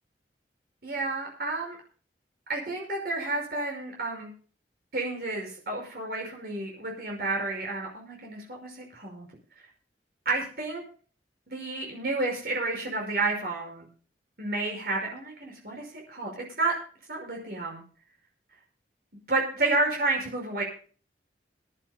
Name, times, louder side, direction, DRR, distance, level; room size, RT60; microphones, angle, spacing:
voice 1, 0.8-1.8 2.5-4.3 4.9-9.3 10.3-10.8 11.5-13.9 14.4-16.7 17.1-17.8 19.3-20.6, right 2 dB, 60° right, 0 dB, 5.6 m, -30 dB
26.5 x 12.0 x 2.2 m, 0.41 s
head